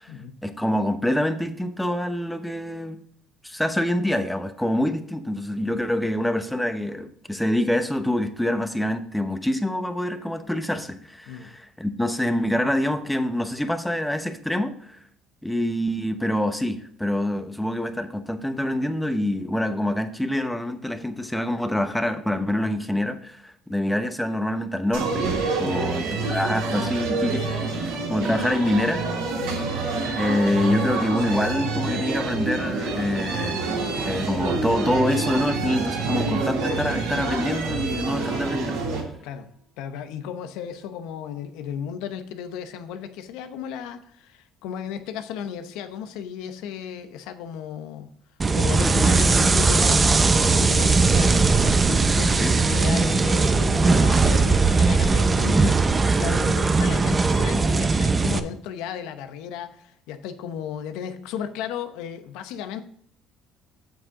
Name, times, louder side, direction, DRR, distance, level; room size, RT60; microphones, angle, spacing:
voice 1, 0.4-3.0 3.4-15.0 15.4-29.0 30.2-33.6 34.1-38.8 48.8-49.1 52.4-52.5 55.5-55.7, left 1 dB, 5° left, 9 dB, 1.0 m, -26 dB
sound 1, 24.9-39.0, right 3 dB, 90° right, 2.7 m, -27 dB
voice 2, 29.4-29.7 39.2-39.5 39.8-48.1 48.5-55.7 56.1-62.8, left 8 dB, 80° left, 9 dB, 0.9 m, -34 dB
sound 2, 48.4-58.4, right 4 dB, 25° right, 0.7 m, -19 dB
8.1 x 7.0 x 3.7 m, 0.64 s
supercardioid pair, 90°, 0 cm